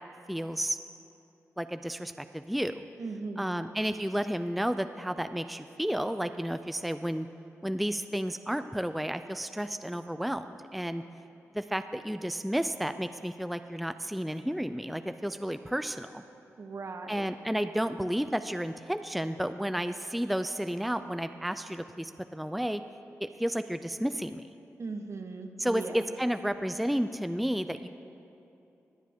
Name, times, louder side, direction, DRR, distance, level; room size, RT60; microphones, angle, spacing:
voice 1, 0.3-0.8 1.6-2.8 3.4-7.3 7.6-11.0 11.5-16.2 17.1-22.8 23.2-24.4 25.6-27.9, equal, ahead, 10 dB, 0.4 m, -32 dB
voice 2, 3.0-3.6 16.6-17.3 24.8-26.0, right 3 dB, 55° right, 6 dB, 1.0 m, -38 dB
20.5 x 7.4 x 3.6 m, 2.8 s
cardioid pair, 55°, 6 cm